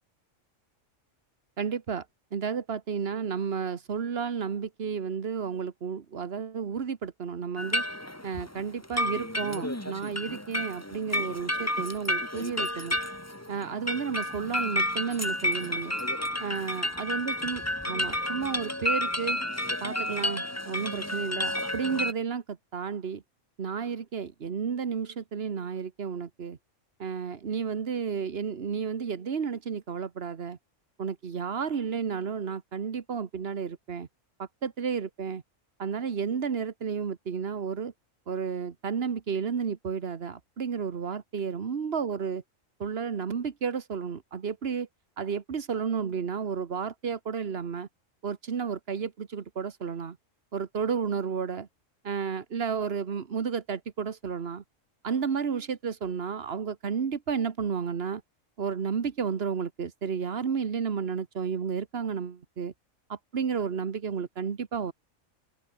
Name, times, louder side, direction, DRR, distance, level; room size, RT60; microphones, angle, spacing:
voice 1, 1.6-2.0 2.3-7.8 8.2-13.0 13.5-15.9 16.4-17.6 17.9-19.4 19.8-23.2 23.6-26.6 27.0-30.6 31.0-34.1 34.4-35.4 35.8-37.9 38.3-42.4 42.8-44.9 45.2-47.9 48.2-50.2 50.5-51.7 52.0-54.6 55.0-58.2 58.6-62.7 63.1-64.9, right 6 dB, 50° right, 1.5 m, -32 dB
sound 1, 7.6-22.1, left 1 dB, 10° left, 2.7 m, -31 dB
open air
omnidirectional pair, 1.3 m